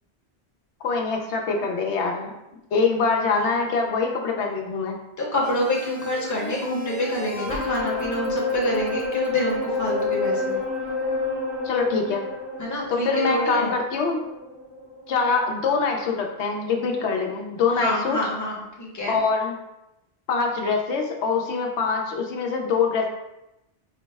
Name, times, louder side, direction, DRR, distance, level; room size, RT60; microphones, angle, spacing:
voice 1, 0.8-2.3 2.7-5.0 11.6-12.3 12.9-14.2 15.1-18.2 19.1-19.5 20.3-23.1, left 4 dB, 85° left, 2 dB, 0.9 m, -24 dB
voice 2, 5.2-10.6 12.6-13.7 17.8-19.2, left 1 dB, 20° left, -3 dB, 0.7 m, -27 dB
sound 1, 5.4-15.8 16.2-16.3, left 3 dB, 20° right, 0.5 m, -29 dB
4.7 x 2.0 x 3.3 m, 0.91 s
omnidirectional pair, 1.1 m